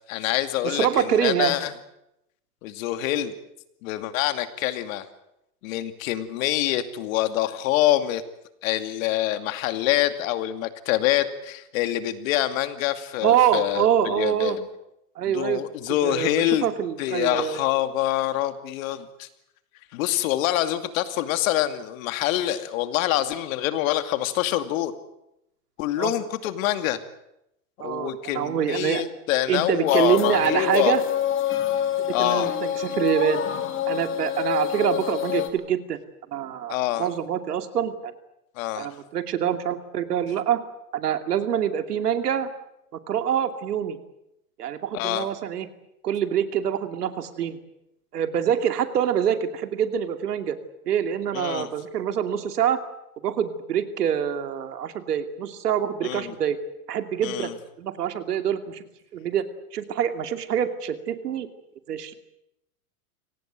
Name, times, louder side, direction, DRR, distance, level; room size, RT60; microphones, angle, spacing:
voice 1, 0.1-1.7 2.6-3.3 3.8-5.1 5.6-8.2 8.6-14.6 15.2-16.7 17.0-19.3 19.9-24.9 25.8-27.0 27.8-30.9 32.1-32.5 36.7-37.1 38.6-38.9 44.9-45.3 51.3-51.7 56.0-56.3 57.2-57.5, left 13 dB, 60° left, 10 dB, 2.6 m, -25 dB
voice 2, 0.6-1.6 13.2-14.6 15.2-15.6 16.0-17.6 26.0-26.1 27.8-29.0 29.5-31.0 32.0-33.4 33.9-36.0 36.3-38.1 38.8-40.6 40.9-42.5 43.1-44.0 44.6-45.7 46.0-47.6 48.1-50.6 50.9-52.8 53.2-56.6 56.9-57.5 57.8-58.8 59.1-59.4 59.7-61.5 61.9-62.1, right 9 dB, 85° right, 9 dB, 2.7 m, -25 dB
sound 1, 29.9-35.5, left 10 dB, 25° left, 3.0 m, -27 dB
25.0 x 18.0 x 9.1 m, 0.85 s
hypercardioid pair, 130°, 46 cm